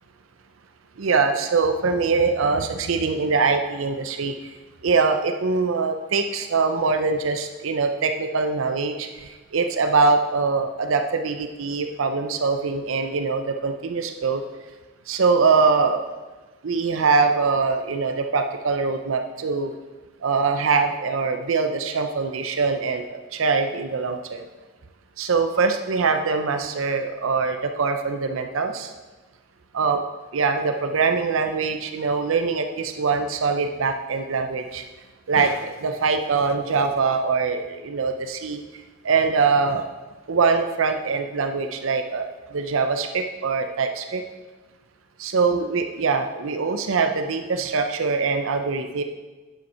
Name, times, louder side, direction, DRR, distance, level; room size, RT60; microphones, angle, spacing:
voice 1, 1.0-4.3 4.8-14.4 15.1-16.0 16.6-19.7 20.2-24.4 25.2-28.9 29.7-30.0 30.3-34.8 35.3-38.6 39.0-39.8 40.3-44.2 45.2-49.0, right 4 dB, 85° right, 6 dB, 0.6 m, -23 dB
9.0 x 7.1 x 4.3 m, 1.3 s
head